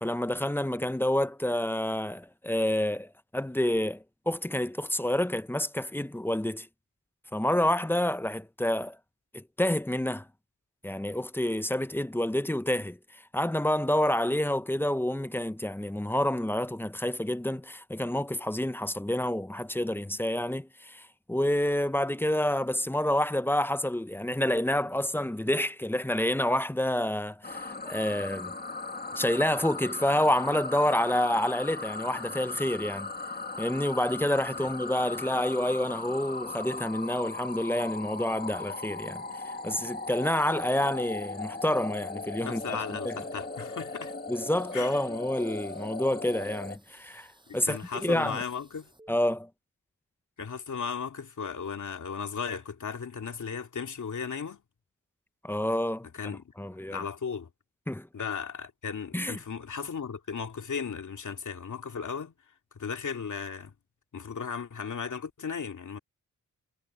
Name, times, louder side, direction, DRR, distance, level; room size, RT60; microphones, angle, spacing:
voice 1, 0.0-6.7 7.3-9.0 9.3-10.3 10.8-28.6 29.2-33.1 33.6-43.2 44.3-48.4 49.1-49.5 55.4-57.1 57.9-58.1 59.1-59.4, left 1 dB, 5° left, 0.6 m, -28 dB
sound 1, 27.4-46.8, left 3 dB, 30° left, 1.9 m, -38 dB
sound 2, 42.0-49.1, right 1 dB, 15° right, 7.2 m, -52 dB
voice 2, 42.4-44.1 44.7-45.0 47.5-48.9 50.4-54.6 56.1-56.5 56.9-57.5 58.1-62.3 62.7-63.7 64.1-66.0, left 6 dB, 70° left, 2.4 m, -36 dB
wide cardioid pair, 105°, 31 cm